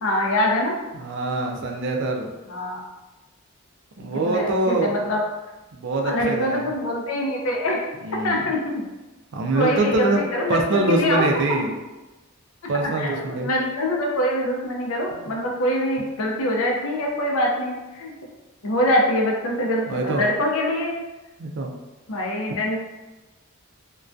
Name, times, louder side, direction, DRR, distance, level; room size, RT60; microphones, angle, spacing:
voice 1, 0.0-0.8 2.5-2.8 4.1-5.2 6.0-7.8 8.2-8.9 9.5-11.7 12.8-18.1 18.6-21.0 22.1-22.8, left 1 dB, 70° left, -1 dB, 0.5 m, -24 dB
voice 2, 0.9-2.3 4.0-5.0 5.7-6.6 8.0-8.4 9.3-10.2 10.5-11.7 12.7-13.5 15.1-15.3 19.9-20.3 21.4-21.7, right 2 dB, 55° right, 2 dB, 0.3 m, -24 dB
2.2 x 2.2 x 2.5 m, 1.1 s
head